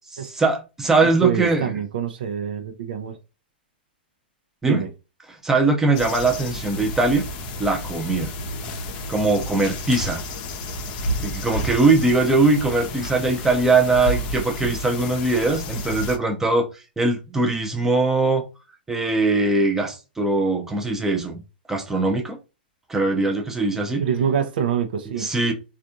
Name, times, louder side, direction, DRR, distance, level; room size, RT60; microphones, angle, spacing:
voice 1, 0.2-1.7 4.6-4.8 5.3-7.3 7.6-8.3 9.1-10.2 11.2-16.7 17.0-18.5 18.9-21.4 21.7-22.4 22.9-24.0 25.2-25.5, right 3 dB, 10° right, 0.7 m, -21 dB
voice 2, 1.0-3.2 4.6-4.9 24.0-25.3, right 8 dB, 60° right, 0.6 m, -25 dB
sound 1, 5.9-16.2, equal, 40° left, 0.7 m, -31 dB
3.4 x 2.5 x 2.6 m
figure-of-eight pair, 110°, 6 cm